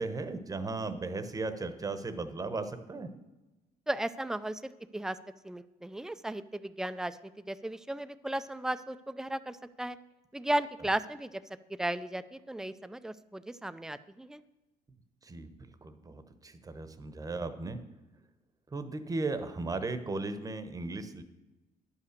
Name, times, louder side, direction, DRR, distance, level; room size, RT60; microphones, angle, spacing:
voice 1, 0.0-3.1 15.2-15.5 15.8-17.8 18.7-21.2, right 3 dB, 20° right, 10 dB, 0.9 m, -36 dB
voice 2, 3.9-5.2 5.4-7.2 7.5-10.0 10.3-11.4 11.7-14.4, right 1 dB, 5° right, 13 dB, 0.4 m, -35 dB
10.5 x 5.7 x 6.6 m, 1.1 s
cardioid pair, 110°, 17 cm